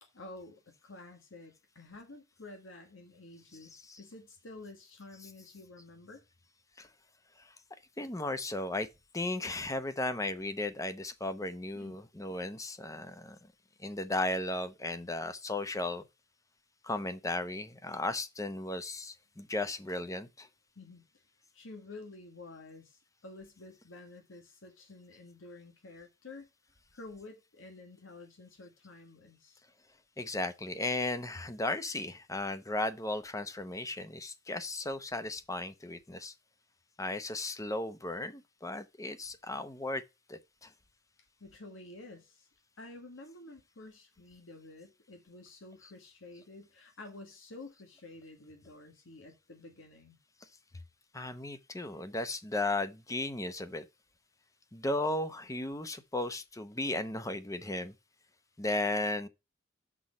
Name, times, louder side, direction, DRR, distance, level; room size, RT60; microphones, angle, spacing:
voice 1, 0.0-6.2 11.7-12.0 19.4-19.5 20.7-21.0 21.5-26.5 26.9-29.6 41.4-42.5 42.8-50.2 50.7-50.8, left 2 dB, 90° left, 1.5 m, -50 dB
voice 2, 3.6-4.0 5.1-5.3 6.8-6.9 7.4-7.5 8.0-8.9 9.1-13.4 13.8-16.0 16.8-20.5 30.2-36.3 37.0-40.0 40.3-40.7 45.8-45.9 51.1-53.8 54.7-57.9 58.6-59.3, left 2 dB, 15° left, 0.7 m, -35 dB
6.2 x 4.2 x 6.3 m
head